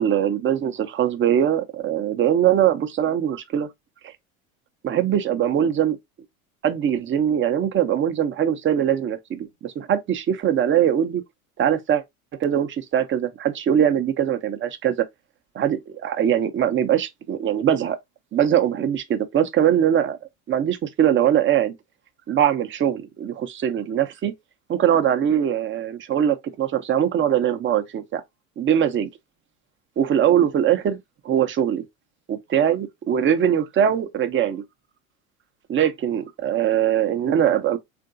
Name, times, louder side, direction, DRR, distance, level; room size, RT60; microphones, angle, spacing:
voice 1, 0.0-3.7 4.8-6.0 6.6-11.2 11.6-12.0 12.4-15.1 15.5-18.0 18.3-20.2 20.5-21.7 22.3-24.3 24.7-28.2 28.6-29.1 30.0-31.0 31.2-31.8 32.3-34.6 35.7-37.8, right 9 dB, 25° right, 0.6 m, -21 dB
3.6 x 2.6 x 2.5 m
hypercardioid pair, 85°, 44 cm